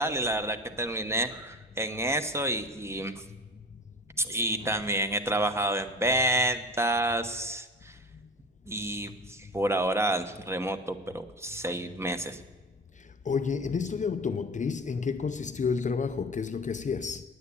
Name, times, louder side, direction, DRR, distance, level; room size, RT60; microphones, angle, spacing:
voice 1, 0.0-3.2 4.2-8.0 8.7-12.4, right 1 dB, 15° right, 1.0 m, -29 dB
voice 2, 13.3-17.2, left 5 dB, 40° left, 0.5 m, -30 dB
9.5 x 9.3 x 8.4 m
cardioid pair, 70°, 20 cm